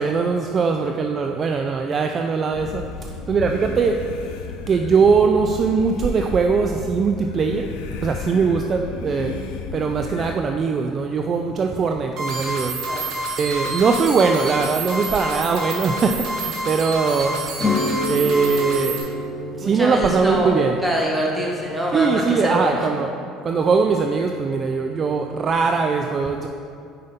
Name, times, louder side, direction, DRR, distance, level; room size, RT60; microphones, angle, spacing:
voice 1, 0.0-4.1 4.7-7.7 8.0-9.4 9.7-12.8 13.4-17.4 18.1-19.0 19.6-20.8 21.9-23.1 23.4-26.5, right 5 dB, 40° right, 4 dB, 0.3 m, -21 dB
sound 1, 2.5-10.3, left 5 dB, 85° left, 0.4 m, -33 dB
sound 2, 12.2-19.0, right 2 dB, 55° right, 1.3 m, -28 dB
sound 3, 17.6-22.8, left 2 dB, 25° left, 0.6 m, -29 dB
voice 2, 19.6-20.6 20.8-22.9, right 1 dB, 10° right, -2 dB, 1.3 m, -24 dB
5.4 x 5.1 x 4.1 m, 2.5 s
supercardioid pair, 95°, 0 cm